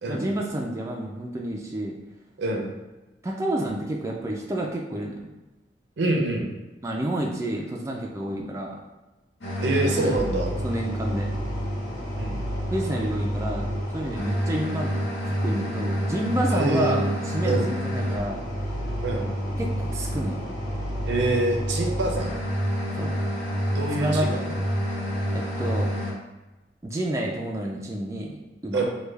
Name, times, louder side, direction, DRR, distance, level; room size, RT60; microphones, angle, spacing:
voice 1, 0.1-1.9 3.2-5.3 6.8-8.8 10.0-10.1 10.6-11.3 12.7-13.7 13.9-18.4 19.6-20.4 23.0-23.1 23.9-24.3 25.3-26.0 26.8-28.8, right 1 dB, 15° right, -1 dB, 0.3 m, -29 dB
voice 2, 2.4-2.7 6.0-6.5 9.6-10.5 12.2-12.4 16.5-17.0 17.4-17.7 19.0-19.3 21.1-22.3 23.7-24.5 28.7-28.8, right 2 dB, 75° right, 1 dB, 0.6 m, -26 dB
sound 1, 9.4-26.1, equal, 80° left, 1.2 m, -28 dB
3.3 x 2.2 x 3.2 m, 1.1 s
head